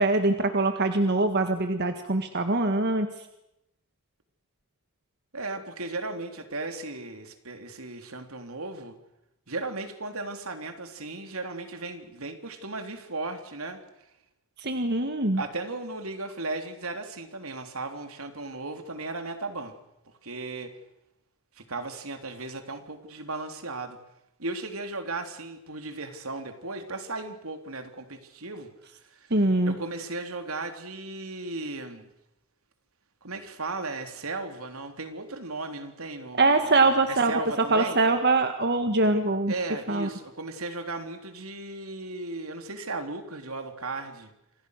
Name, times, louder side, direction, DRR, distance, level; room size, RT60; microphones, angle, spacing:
voice 1, 0.0-3.1 14.6-15.4 29.3-29.8 36.4-37.3 37.7-39.5 39.9-40.1, right 2 dB, 50° right, 7 dB, 1.8 m, -23 dB
voice 2, 5.3-9.0 9.5-13.8 15.3-19.8 20.1-20.7 21.6-24.0 24.4-29.3 29.7-32.1 33.2-36.6 37.1-38.0 39.5-44.3, right 3 dB, 80° right, 6 dB, 3.5 m, -36 dB
28.5 x 26.0 x 6.7 m, 0.84 s
head